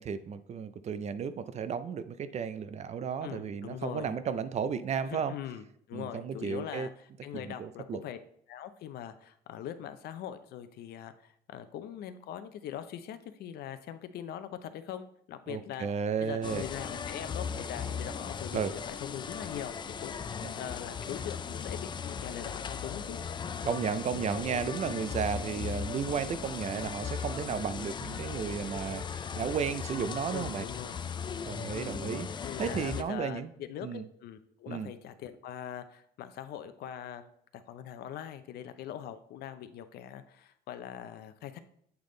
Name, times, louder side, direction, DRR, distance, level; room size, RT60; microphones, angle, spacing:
voice 1, 0.0-5.3 5.9-6.9 7.3-8.0 15.5-16.6 18.5-18.7 20.4-20.5 23.6-30.7 31.4-32.3 32.6-33.5 33.8-34.0 34.7-34.9, right 7 dB, 40° right, 12 dB, 0.5 m, -33 dB
voice 2, 3.2-4.2 5.1-5.6 5.9-8.2 8.5-15.9 16.2-23.2 30.3-31.0 31.8-41.6, left 10 dB, 70° left, 10 dB, 0.6 m, -42 dB
sound 1, 16.4-33.0, left 6 dB, 25° left, 0.4 m, -38 dB
8.1 x 3.5 x 3.8 m, 0.68 s
cardioid pair, 110°, 17 cm